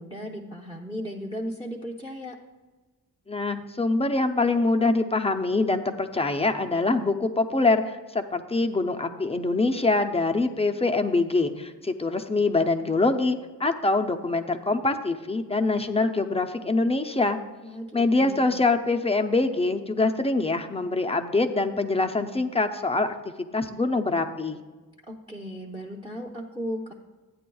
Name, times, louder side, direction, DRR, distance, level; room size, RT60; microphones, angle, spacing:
voice 1, 0.0-2.4 17.6-18.7 25.1-26.9, equal, 15° right, 0 dB, 0.8 m, -36 dB
voice 2, 3.3-7.8 8.1-17.4 17.9-23.1 23.5-24.6, left 3 dB, 15° left, 6 dB, 0.5 m, -24 dB
13.5 x 9.3 x 2.3 m, 1.2 s
wide cardioid pair, 115°, 38 cm